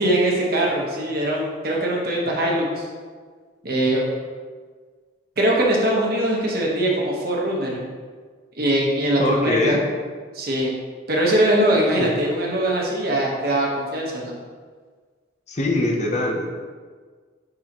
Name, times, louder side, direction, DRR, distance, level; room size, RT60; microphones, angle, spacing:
voice 1, 0.0-2.9 3.6-4.1 5.4-7.8 8.6-9.8 10.3-10.7 11.1-14.3, right 1 dB, 50° right, -2 dB, 1.2 m, -21 dB
voice 2, 9.2-9.8 12.0-12.1 15.5-16.5, left 2 dB, 35° left, 1 dB, 0.7 m, -22 dB
9.8 x 4.0 x 3.0 m, 1.6 s
head